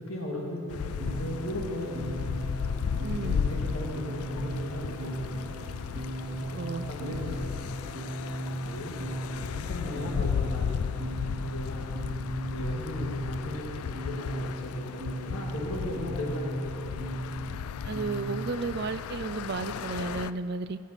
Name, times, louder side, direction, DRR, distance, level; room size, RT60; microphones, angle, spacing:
voice 1, 0.0-2.2 3.2-5.5 6.4-7.9 8.6-9.0 9.3-10.9 11.4-11.9 12.5-16.9, equal, 65° left, -1 dB, 2.1 m, -37 dB
sound 1, 0.7-20.3, left 7 dB, 80° left, 0.3 m, -35 dB
sound 2, 1.0-18.5, right 1 dB, 20° right, 1.7 m, -37 dB
voice 2, 3.0-3.4 6.5-6.9 17.8-20.8, right 4 dB, 45° right, 13 dB, 0.4 m, -33 dB
15.5 x 7.4 x 5.8 m, 2.5 s
head